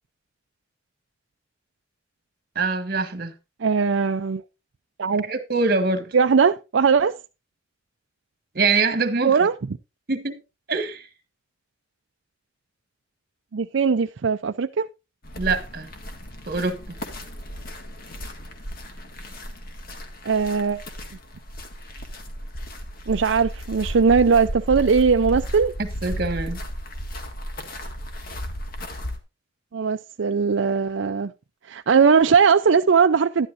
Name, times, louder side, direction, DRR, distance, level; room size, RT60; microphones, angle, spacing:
voice 1, 2.6-3.3 5.2-6.2 8.6-9.4 10.1-10.4 10.7-11.1 15.4-15.9 16.5-16.8 25.8-26.6, right 3 dB, 50° right, 1.7 m, -24 dB
voice 2, 3.6-4.4 5.0-5.3 6.1-7.2 9.2-9.5 13.5-14.9 20.2-20.8 23.1-25.7 29.7-31.3 31.7-33.5, right 5 dB, 75° right, 0.5 m, -19 dB
sound 1, 15.2-29.2, equal, 50° left, 1.8 m, -34 dB
11.5 x 11.5 x 2.6 m
head